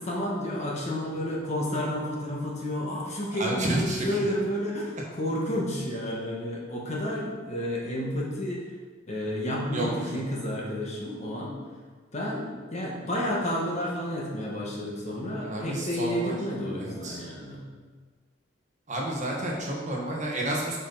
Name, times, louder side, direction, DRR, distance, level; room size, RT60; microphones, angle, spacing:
voice 1, 0.0-8.6 9.1-11.5 12.1-17.6, equal, 35° left, -4 dB, 1.4 m, -31 dB
voice 2, 3.3-4.2 9.7-9.9 10.1-10.2 15.4-16.3 16.8-17.2 18.9-20.8, right 1 dB, 40° right, -2 dB, 1.3 m, -30 dB
7.6 x 5.6 x 4.0 m, 1.5 s
head